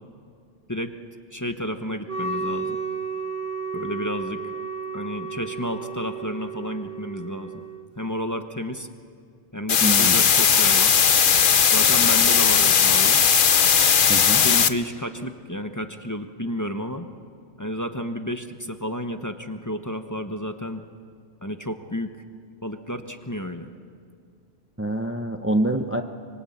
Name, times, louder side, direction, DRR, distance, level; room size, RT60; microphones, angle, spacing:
voice 1, 1.3-2.8 3.7-4.5 4.9-7.5 8.0-8.9 9.5-11.0 11.7-13.2 14.4-17.1 17.6-20.8 21.4-22.2 22.6-23.7, equal, 15° left, 6 dB, 1.1 m, -31 dB
Wind instrument woodwind instrument, 2.1-7.9, right 4 dB, 45° right, 1.4 m, -32 dB
sound 1, 9.7-14.7, left 7 dB, 50° left, 0.9 m, -17 dB
voice 2, 9.8-10.2 14.1-14.4 24.8-26.0, right 1 dB, 10° right, 6 dB, 0.9 m, -25 dB
25.0 x 23.5 x 8.7 m, 2.2 s
omnidirectional pair, 1.2 m